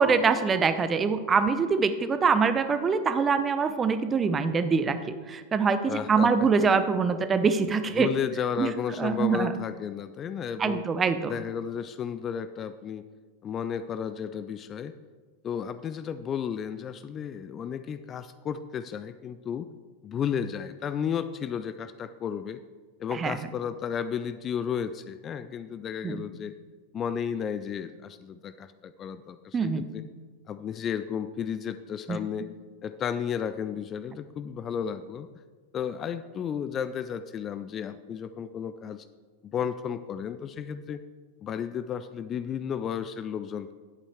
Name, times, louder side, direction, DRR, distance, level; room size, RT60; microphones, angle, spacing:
voice 1, 0.0-8.1 8.6-8.7 9.0-9.6 10.6-11.3 23.1-23.4 26.0-26.2 29.5-29.9 32.1-32.2, right 5 dB, 20° right, 11 dB, 0.6 m, -24 dB
voice 2, 5.9-6.3 7.9-10.8 11.3-13.0 13.4-14.9 15.4-19.7 20.0-22.6 23.0-26.6 26.9-30.0 30.5-32.5 32.8-35.3 35.7-39.1 39.4-41.0 41.4-43.7, left 8 dB, 25° left, 12 dB, 0.3 m, -33 dB
11.0 x 8.3 x 3.4 m, 1.5 s
figure-of-eight pair, 90°, 0 cm